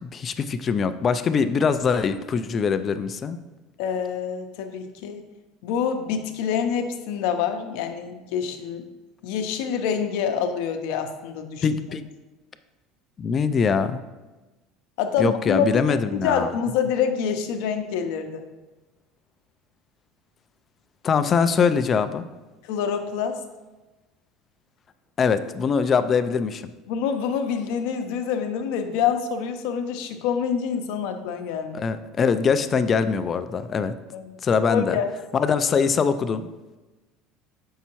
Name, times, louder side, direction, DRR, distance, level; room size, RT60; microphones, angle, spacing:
voice 1, 0.0-3.4 11.6-12.1 13.2-14.0 15.2-16.5 21.0-22.3 25.2-26.6 31.7-33.9 34.4-35.0 35.3-36.5, left 6 dB, 30° left, 11 dB, 0.3 m, -22 dB
voice 2, 3.8-5.2 5.6-8.8 9.2-11.6 15.0-18.5 22.6-23.4 26.9-31.9 34.1-34.3 34.7-35.1, left 7 dB, 75° left, 6 dB, 0.7 m, -26 dB
7.1 x 5.5 x 3.0 m, 1.1 s
cardioid pair, 145°, 0 cm